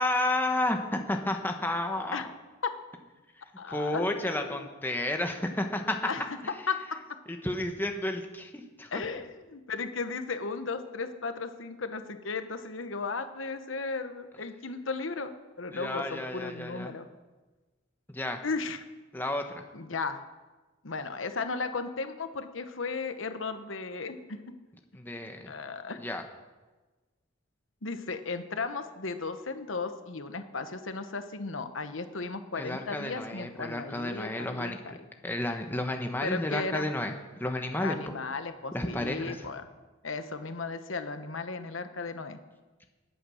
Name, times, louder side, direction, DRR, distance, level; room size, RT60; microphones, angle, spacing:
voice 1, 0.0-2.2 3.7-6.0 7.3-8.9 15.7-16.9 18.1-18.4 19.1-19.6 24.9-25.5 26.0-26.2 32.6-35.0 35.2-37.1 37.4-38.1 38.7-39.5, left 1 dB, 10° left, 4 dB, 1.2 m, -31 dB
voice 2, 3.6-4.7 6.1-6.2 6.7-6.8 8.9-15.3 15.6-17.1 18.4-18.8 19.7-20.2 20.8-24.4 25.5-26.0 27.8-34.9 36.2-36.9 37.8-39.6 40.0-42.4, left 4 dB, 75° left, 9 dB, 1.1 m, -35 dB
20.5 x 8.9 x 6.4 m, 1.2 s
head